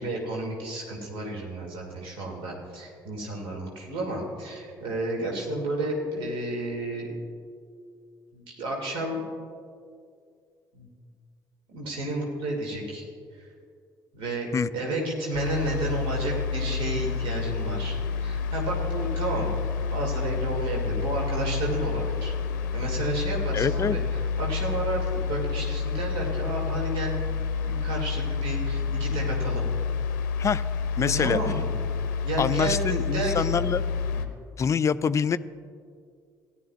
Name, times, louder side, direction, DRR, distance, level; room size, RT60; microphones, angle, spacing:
voice 1, 0.0-7.1 8.3-9.2 10.7-10.9 11.7-13.1 14.1-19.5 19.9-22.3 22.7-24.0 24.4-27.1 27.6-29.6 31.2-31.6 32.2-33.6 34.1-34.2, right 1 dB, 60° right, -1 dB, 2.1 m, -31 dB
sound 1, 15.3-34.3, left 5 dB, 70° left, 0.6 m, -29 dB
voice 2, 23.5-24.0 30.4-30.6 31.0-31.4 32.4-33.9 34.6-35.4, left 6 dB, 30° left, 16 dB, 0.4 m, -25 dB
17.5 x 11.0 x 2.3 m, 2.3 s
figure-of-eight pair, 50°, 10 cm